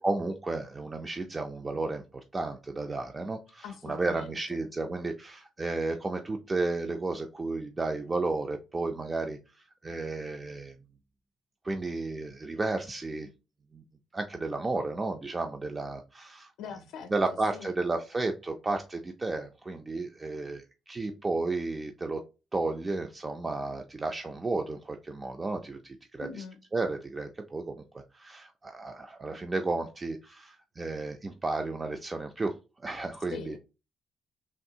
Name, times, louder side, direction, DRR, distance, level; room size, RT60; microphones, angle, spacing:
voice 1, 0.0-10.8 11.6-13.3 13.7-13.8 14.1-16.5 17.1-22.2 22.5-26.3 26.7-32.5 32.8-33.6, right 3 dB, 25° right, 0.4 m, -33 dB
voice 2, 3.6-4.3 16.6-17.8 26.2-26.6 33.3-33.6, left 7 dB, 90° left, 0.4 m, -43 dB
3.4 x 2.3 x 2.7 m
cardioid pair, 90°, 0 cm